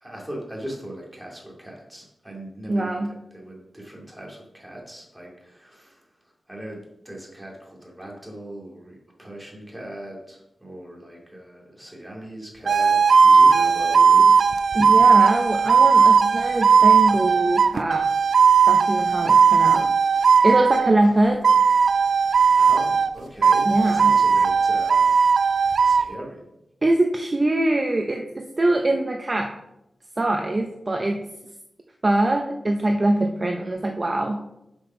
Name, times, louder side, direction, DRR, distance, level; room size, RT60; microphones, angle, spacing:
voice 1, 0.0-6.1 6.5-14.4 22.6-25.1 25.8-26.4, right 1 dB, 10° right, -2 dB, 2.6 m, -39 dB
voice 2, 2.7-3.1 14.7-18.1 18.7-19.9 20.4-21.4 23.7-24.2 26.8-29.5 30.2-31.3 32.0-34.4, right 2 dB, 30° right, 3 dB, 0.7 m, -23 dB
sound 1, 12.7-21.0 21.4-23.1 23.4-26.0, right 6 dB, 75° right, 0.4 m, -17 dB
7.9 x 5.5 x 5.7 m, 0.87 s
wide cardioid pair, 120°, 0 cm